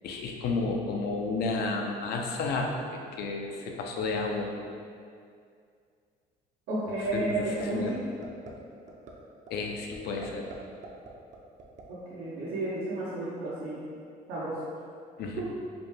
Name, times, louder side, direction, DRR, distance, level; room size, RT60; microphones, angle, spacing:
voice 1, 0.0-4.5 7.1-7.9 9.5-10.4 15.2-15.4, left 3 dB, 70° left, 2 dB, 0.5 m, -32 dB
voice 2, 6.7-8.0 11.9-13.8 14.3-14.6, right 2 dB, 90° right, -10 dB, 0.9 m, -32 dB
sound 1, 7.0-7.3 7.6-7.9 8.2-8.5 8.9-9.1 9.5-9.6 9.9-10.6 10.8-11.8, right 4 dB, 45° right, 0.6 m, -43 dB
5.0 x 2.2 x 3.2 m, 2.3 s
cardioid pair, 110°, 17 cm